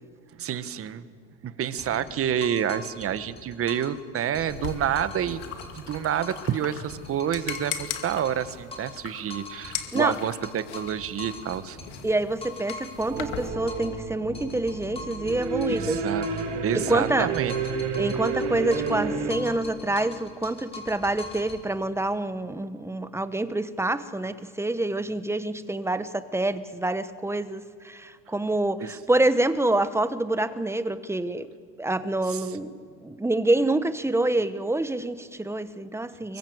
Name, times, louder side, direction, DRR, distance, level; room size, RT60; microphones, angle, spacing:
voice 1, 0.4-1.0 1.4-5.4 5.7-11.8 15.7-16.2 16.6-17.5 28.8-29.0 32.3-32.5 36.3-36.4, right 9 dB, 40° right, 12 dB, 1.6 m, -28 dB
sound 1, 1.8-4.0 4.3-6.6 6.9-9.0 9.3-14.0 14.3-16.6 16.9-19.0 19.3-21.6, left 3 dB, 15° left, 5.9 m, -42 dB
sound 2, 4.5-13.5, left 10 dB, 90° left, 2.5 m, -39 dB
voice 2, 12.0-16.0 16.7-17.3 18.0-31.5 31.8-32.7 33.0-36.4, right 2 dB, 10° right, 12 dB, 1.2 m, -27 dB
sound 3, 13.1-19.3, right 5 dB, 90° right, 6.0 m, -30 dB
25.0 x 23.5 x 8.1 m, 2.2 s
supercardioid pair, 100°, 34 cm